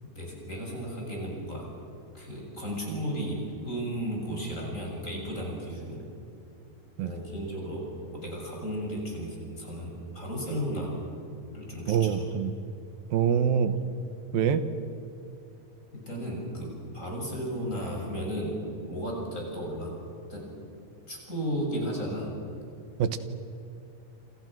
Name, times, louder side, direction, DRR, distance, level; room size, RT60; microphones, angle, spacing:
voice 1, 0.0-1.7 2.1-6.0 7.0-7.9 8.1-10.9 11.5-12.2 15.9-18.6 18.8-19.9 20.3-20.5 21.1-22.3, equal, 20° left, -1 dB, 7.0 m, -34 dB
voice 2, 11.9-12.5 13.1-13.8 14.3-14.6 23.0-23.2, right 8 dB, 85° right, 11 dB, 3.0 m, -24 dB
28.0 x 27.5 x 6.2 m, 2.7 s
omnidirectional pair, 4.1 m